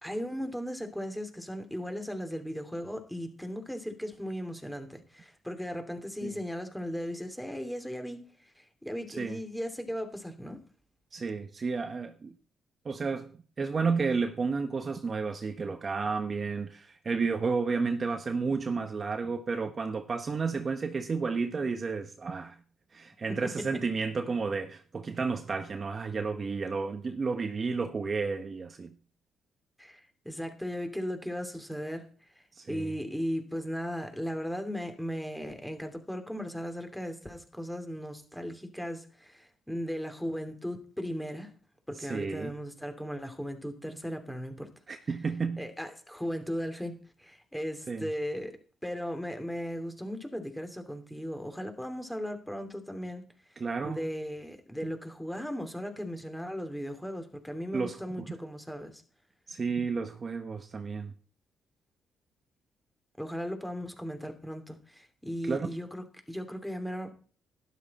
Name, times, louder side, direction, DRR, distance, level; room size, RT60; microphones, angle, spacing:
voice 1, 0.0-10.6 23.3-23.4 29.8-32.1 32.7-41.5 41.9-44.7 45.6-53.2 53.5-59.0 63.2-67.1, equal, 5° left, 2.8 m, -37 dB
voice 2, 11.1-12.3 12.8-13.3 13.6-22.6 22.9-28.9 32.6-32.9 42.0-42.5 44.9-45.6 47.9-48.1 53.6-54.0 54.8-54.9 57.7-58.3 59.5-61.1 65.4-65.7, right 4 dB, 40° right, 1.2 m, -32 dB
12.0 x 11.5 x 4.3 m
cardioid pair, 90°, 0 cm